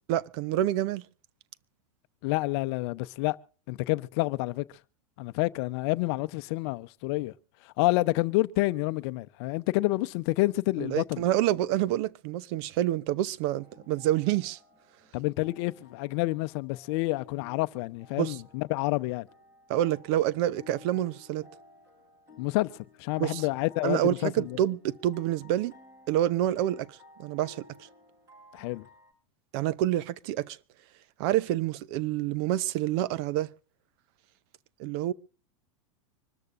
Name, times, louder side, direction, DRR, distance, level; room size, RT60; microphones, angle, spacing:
voice 1, 0.1-1.0 10.8-14.6 18.2-18.4 19.7-21.5 23.2-23.4 23.8-25.7 26.1-27.6 29.5-30.6 31.2-33.5 34.8-35.1, right 13 dB, 50° right, 0.7 m, -27 dB
voice 2, 2.2-3.4 3.7-4.6 5.2-7.3 7.6-11.2 15.1-19.3 22.4-24.6 28.5-28.8, left 21 dB, 55° left, 0.7 m, -28 dB
sound 1, 13.6-29.1, left 2 dB, 20° right, 7.3 m, -56 dB
25.5 x 13.5 x 2.5 m
hypercardioid pair, 130°, 17 cm